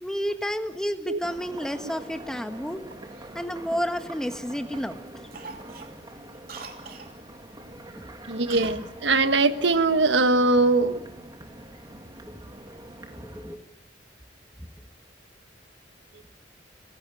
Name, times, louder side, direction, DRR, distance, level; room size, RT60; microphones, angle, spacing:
voice 1, 0.0-2.8 3.3-5.0 8.0-8.1 12.4-12.5 13.2-13.6 14.6-14.7, equal, 5° left, 7 dB, 1.5 m, -31 dB
sound 1, 1.2-13.6, right 1 dB, 25° right, 2.2 m, -44 dB
Cough, 3.1-4.4 4.7-5.0 5.3-7.1 8.5-8.9 9.1-9.2, right 5 dB, 55° right, 2.8 m, -43 dB
voice 2, 8.3-11.0, right 3 dB, 85° right, 10 dB, 1.4 m, -21 dB
28.0 x 17.5 x 7.8 m, 0.85 s
head